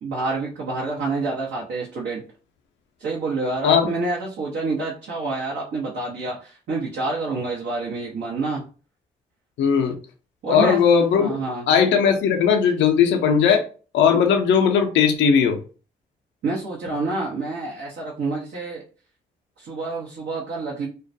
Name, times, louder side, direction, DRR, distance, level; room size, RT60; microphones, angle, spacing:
voice 1, 0.0-2.2 3.0-8.7 10.4-10.9 11.2-11.7 16.4-18.8 19.6-20.9, right 3 dB, 70° right, 0.7 m, -28 dB
voice 2, 9.6-9.9 10.5-11.3 11.7-13.7 13.9-15.6, left 7 dB, 75° left, 0.4 m, -18 dB
2.2 x 2.1 x 2.6 m
supercardioid pair, 45°, 19 cm